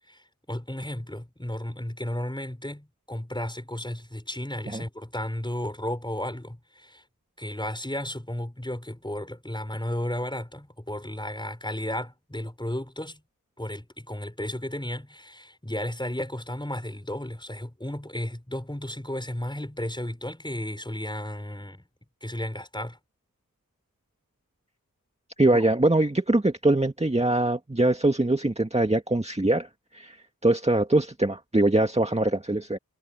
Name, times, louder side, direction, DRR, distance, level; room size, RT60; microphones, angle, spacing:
voice 1, 0.0-7.0 7.4-13.2 13.6-21.8 22.2-23.0, left 1 dB, 15° left, 6.0 m, -34 dB
voice 2, 25.4-30.2 30.4-32.8, right 2 dB, 20° right, 1.9 m, -23 dB
cardioid pair, 45°, 36 cm